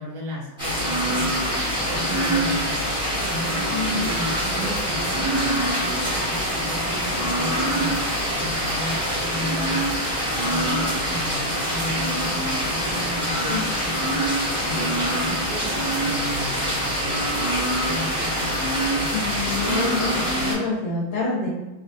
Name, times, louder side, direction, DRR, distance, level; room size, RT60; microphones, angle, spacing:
voice 1, 0.0-1.4 1.8-2.8 3.2-8.0 8.3-9.9 10.4-14.2 14.6-17.3 17.8-18.7 19.0-19.1, equal, 80° right, -2 dB, 0.8 m, -34 dB
sound 1, 0.6-20.5, equal, 5° right, 0.9 m, -24 dB
voice 2, 3.7-4.1 13.3-13.7 19.1-21.5, left 4 dB, 75° left, -3 dB, 1.3 m, -27 dB
3.4 x 2.6 x 2.5 m, 1.1 s
omnidirectional pair, 2.2 m